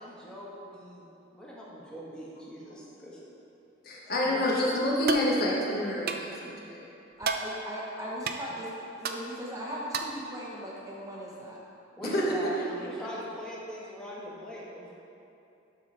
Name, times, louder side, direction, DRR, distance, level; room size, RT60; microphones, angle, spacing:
voice 1, 0.0-3.2 4.2-4.4 11.9-14.9, equal, 5° left, -7 dB, 1.3 m, -41 dB
voice 2, 3.8-6.9 12.0-12.5 12.8-12.9, left 1 dB, 50° left, -4 dB, 1.2 m, -28 dB
sound 1, 5.1-5.3 6.1-6.3 7.2-7.5 8.3-8.4 9.0-9.2 9.9-10.2, right 5 dB, 50° right, 0.4 m, -30 dB
voice 3, 7.2-11.6 12.0-12.1, equal, 15° right, -5 dB, 1.0 m, -38 dB
12.0 x 4.0 x 4.3 m, 2.8 s
head